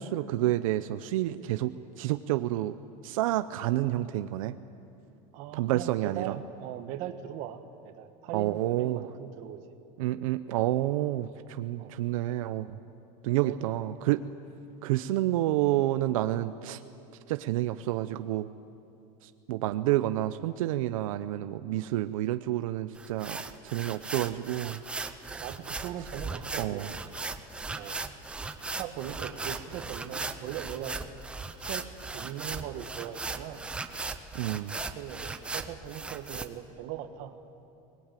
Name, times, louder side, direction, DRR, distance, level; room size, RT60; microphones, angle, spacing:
voice 1, 0.0-2.7 3.0-4.6 5.5-6.4 8.3-9.1 10.0-12.7 13.2-14.2 14.8-16.8 17.3-18.5 19.2-24.8 26.6-26.9 34.3-34.8, right 14 dB, 85° right, 10 dB, 0.8 m, -29 dB
voice 2, 5.3-9.6 11.8-12.0 13.4-13.7 25.4-27.0 27.7-28.0 28.8-31.0 31.6-31.9 32.1-33.6 34.9-37.3, right 11 dB, 45° right, 7 dB, 1.5 m, -40 dB
sound 1, 23.0-36.5, right 3 dB, 5° right, 0.6 m, -38 dB
23.5 x 20.0 x 9.1 m, 2.7 s
supercardioid pair, 180°, 17 cm